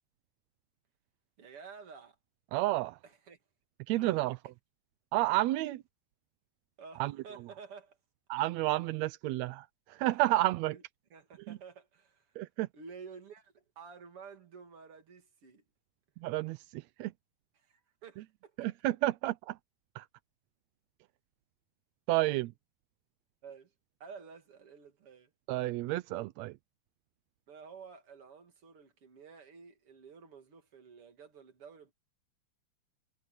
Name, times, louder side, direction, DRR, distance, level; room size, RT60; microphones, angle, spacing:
voice 1, 1.4-2.2 3.0-3.4 4.0-4.4 6.8-8.0 10.6-10.8 11.1-12.3 12.7-15.6 17.5-18.5 23.4-23.7 24.0-25.3 27.5-31.9, right 5 dB, 45° right, 3.3 m, -51 dB
voice 2, 2.5-3.0 3.9-4.4 5.1-5.8 7.0-7.1 8.3-10.8 11.5-11.6 12.4-12.7 16.2-17.1 18.6-19.6 20.0-20.1 22.1-22.5 25.5-26.5, right 17 dB, 75° right, 1.7 m, -31 dB
omnidirectional pair, 3.5 m